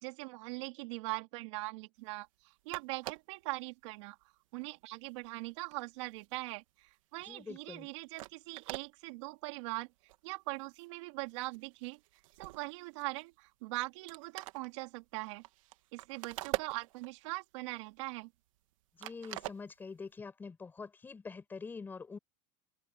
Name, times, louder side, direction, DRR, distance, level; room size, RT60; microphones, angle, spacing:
voice 1, 0.0-4.2 4.5-9.9 10.2-12.0 12.4-15.4 15.9-18.3, right 23 dB, 65° right, 3.7 m, -41 dB
sound 1, 2.4-2.5 2.7-3.4 4.0-4.2 4.6-6.9 7.3-7.5 7.9-8.0 8.1-8.9 9.5-9.6 10.0-10.2 10.6-11.0 11.2-13.5 13.8-13.9 14.1-17.3 17.7-18.7 19.0-20.1, right 17 dB, 85° right, 2.0 m, -44 dB
voice 2, 7.2-7.9 19.0-22.2, left 4 dB, 10° left, 6.1 m, -45 dB
open air
supercardioid pair, 170°, 16 cm